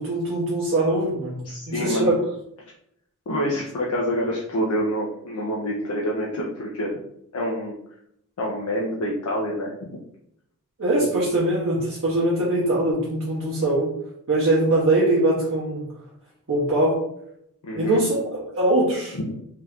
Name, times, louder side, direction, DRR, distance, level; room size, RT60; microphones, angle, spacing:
voice 1, 0.0-2.2 10.8-13.9 14.3-15.9 16.5-17.0 17.7-19.3, right 1 dB, 60° right, -5 dB, 0.7 m, -22 dB
voice 2, 1.5-2.1 3.3-7.0 7.3-7.8 8.4-10.0 17.6-18.0 19.1-19.3, equal, 75° left, -3 dB, 0.5 m, -27 dB
2.8 x 2.4 x 3.3 m, 0.74 s
head